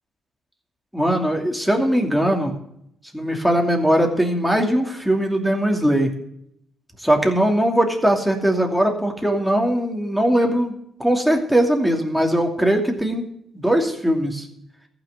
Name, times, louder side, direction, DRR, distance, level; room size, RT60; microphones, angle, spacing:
voice 1, 0.9-2.5 3.1-6.1 7.0-10.7 11.0-13.3 13.5-14.5, right 1 dB, ahead, 2 dB, 2.7 m, -20 dB
14.5 x 6.2 x 8.3 m, 0.73 s
cardioid pair, 90°, 0 cm